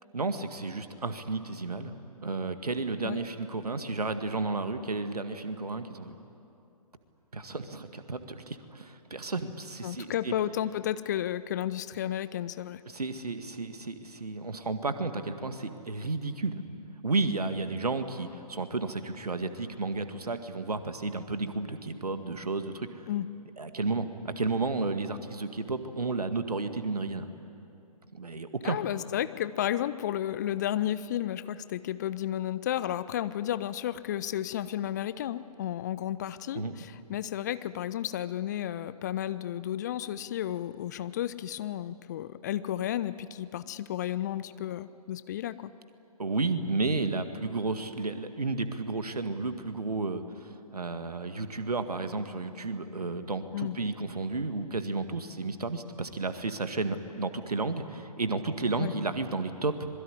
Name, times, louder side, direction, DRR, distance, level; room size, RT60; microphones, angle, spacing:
voice 1, 0.1-2.0 2.2-6.1 7.3-10.3 12.9-16.6 17.0-23.1 23.6-27.3 28.1-28.8 36.6-36.7 46.2-59.9, right 3 dB, 70° right, 9 dB, 2.0 m, -32 dB
voice 2, 9.8-12.8 23.1-23.3 28.6-45.7 53.5-53.8 58.8-58.9, left 11 dB, 25° left, 15 dB, 0.5 m, -32 dB
25.5 x 22.0 x 9.8 m, 2.7 s
figure-of-eight pair, 130°, 20 cm